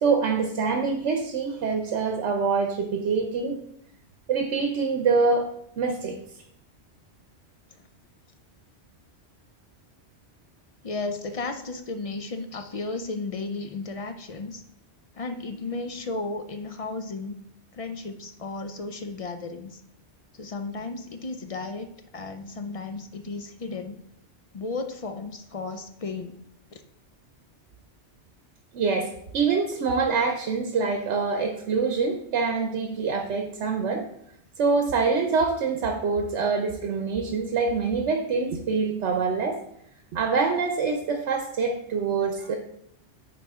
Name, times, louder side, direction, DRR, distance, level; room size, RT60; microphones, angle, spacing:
voice 1, 0.0-3.6 4.3-5.5 5.8-6.2 28.7-34.0 34.6-39.6 40.1-42.6, right 4 dB, 85° right, 4 dB, 1.0 m, -25 dB
voice 2, 10.8-14.6 15.1-17.3 17.7-19.8 20.3-24.0 24.5-26.4 26.7-26.8 42.2-42.3, left 3 dB, 50° left, 7 dB, 0.4 m, -34 dB
9.0 x 4.1 x 3.6 m, 0.73 s
omnidirectional pair, 1.1 m